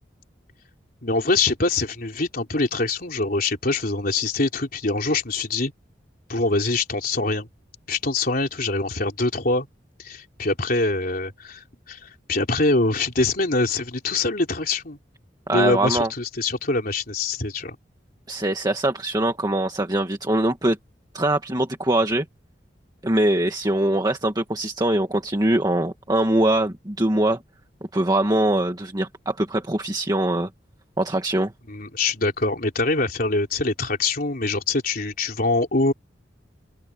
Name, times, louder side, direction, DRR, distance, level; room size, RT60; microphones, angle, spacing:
voice 1, 1.0-5.7 6.3-7.5 7.9-9.7 10.0-15.0 15.5-17.8 31.7-35.9, left 3 dB, 55° left, 3.6 m, -24 dB
voice 2, 15.5-16.1 18.3-20.8 21.1-22.3 23.0-27.4 27.9-30.5 31.0-31.5, right 1 dB, 25° right, 1.8 m, -22 dB
open air
head